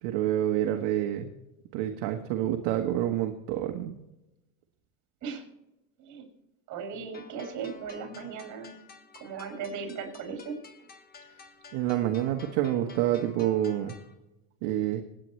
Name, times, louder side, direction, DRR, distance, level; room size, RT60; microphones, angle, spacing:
voice 1, 0.0-1.3 1.7-4.0 11.7-13.9 14.6-15.0, right 12 dB, 60° right, 4 dB, 1.3 m, -28 dB
voice 2, 6.7-8.7 9.2-10.6, right 6 dB, 45° right, 4 dB, 6.1 m, -37 dB
sound 1, 7.1-14.1, left 4 dB, 20° left, 1.4 m, -51 dB
25.5 x 9.1 x 3.2 m, 0.93 s
supercardioid pair, 135°, 43 cm